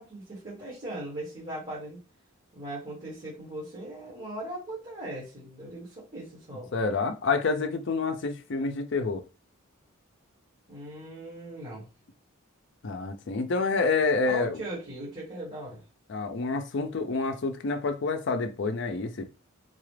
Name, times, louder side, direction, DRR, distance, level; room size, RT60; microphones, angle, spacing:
voice 1, 0.0-2.0 2.5-6.7 10.7-11.9 14.2-15.8, right 1 dB, 35° right, 1.6 m, -39 dB
voice 2, 6.7-9.2 12.8-14.6 16.1-19.3, left 4 dB, 55° left, 0.5 m, -28 dB
3.9 x 2.4 x 3.2 m
head